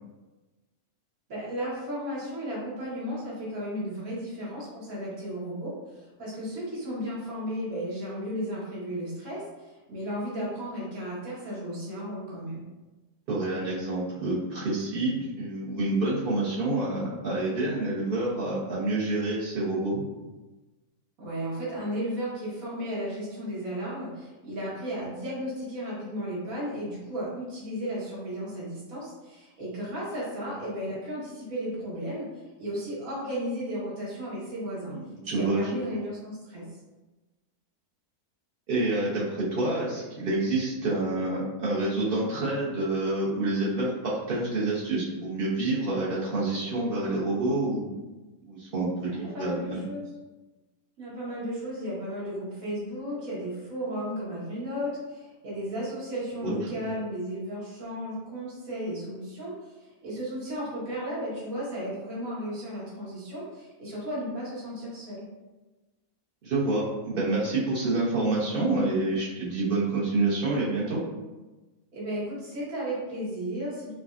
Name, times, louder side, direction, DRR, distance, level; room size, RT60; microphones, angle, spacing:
voice 1, 1.3-5.7 6.2-12.6 21.2-32.3 32.6-35.0 35.3-36.7 49.1-50.1 51.0-65.2 71.9-73.9, equal, 65° right, -8 dB, 1.7 m, -34 dB
voice 2, 13.3-20.0 34.9-35.6 38.7-48.0 48.5-49.9 56.4-56.8 66.4-71.0, right 2 dB, 40° right, -6 dB, 1.1 m, -28 dB
5.0 x 2.3 x 2.5 m, 1.2 s
omnidirectional pair, 1.6 m